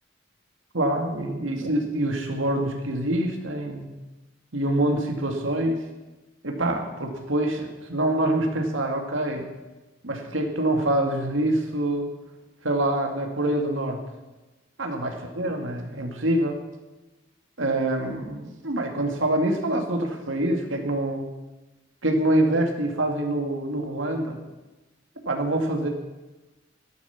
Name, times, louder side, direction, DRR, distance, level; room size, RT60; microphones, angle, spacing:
voice 1, 0.7-3.9 4.5-5.9 6.4-9.5 10.0-12.1 12.6-14.0 14.8-16.7 17.6-21.3 22.0-24.4 25.3-25.9, right 1 dB, 90° right, 3 dB, 2.3 m, -25 dB
13.5 x 12.0 x 5.9 m, 1.1 s
head